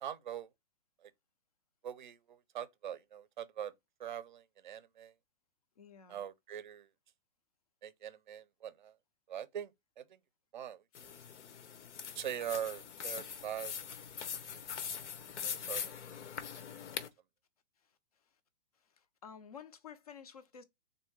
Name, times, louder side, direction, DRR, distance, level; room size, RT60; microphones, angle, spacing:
voice 1, 0.0-0.5 1.0-1.1 1.8-3.7 4.0-5.1 6.1-6.9 7.8-8.9 9.3-9.7 10.0-10.1 10.5-11.1 12.1-13.7 15.4-15.9, right 9 dB, 45° right, 0.5 m, -42 dB
voice 2, 5.8-6.2 19.0-20.6, left 7 dB, 35° left, 0.4 m, -52 dB
sound 1, 11.0-17.1, left 7 dB, 85° left, 0.9 m, -42 dB
3.6 x 2.7 x 4.4 m
hypercardioid pair, 175°, 34 cm